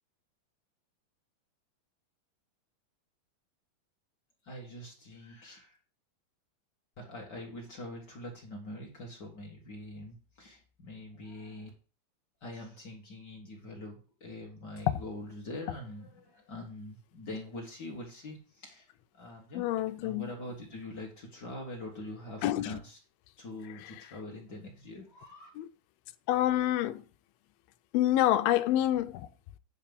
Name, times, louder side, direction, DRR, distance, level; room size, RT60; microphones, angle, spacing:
voice 1, 4.4-5.8 7.0-11.7 12.4-19.6 20.0-23.0 23.4-25.5, left 1 dB, 65° left, 1.0 m, -44 dB
voice 2, 19.5-20.3 22.4-22.8 23.7-23.9 25.6-25.7 26.3-27.0 27.9-29.3, left 13 dB, 80° left, 2.4 m, -27 dB
9.5 x 3.6 x 6.8 m
omnidirectional pair, 4.5 m